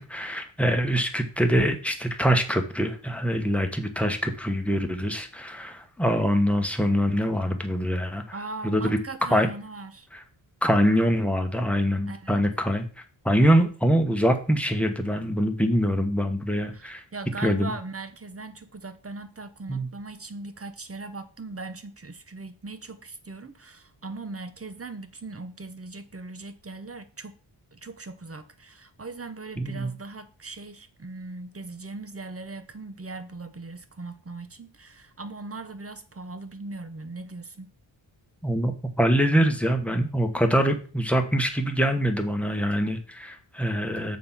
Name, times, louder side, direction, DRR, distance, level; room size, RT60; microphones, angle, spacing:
voice 1, 0.0-8.2 8.6-9.0 9.3-9.5 10.1-10.2 10.6-12.9 13.2-17.0 17.4-17.7 19.7-19.9 29.6-29.9 38.4-44.2, equal, 5° left, 1.3 m, -24 dB
voice 2, 8.3-10.1 12.1-12.4 16.7-27.3 27.7-37.7, right 3 dB, 30° right, 1.0 m, -39 dB
6.9 x 5.1 x 5.7 m
wide cardioid pair, 80°, 49 cm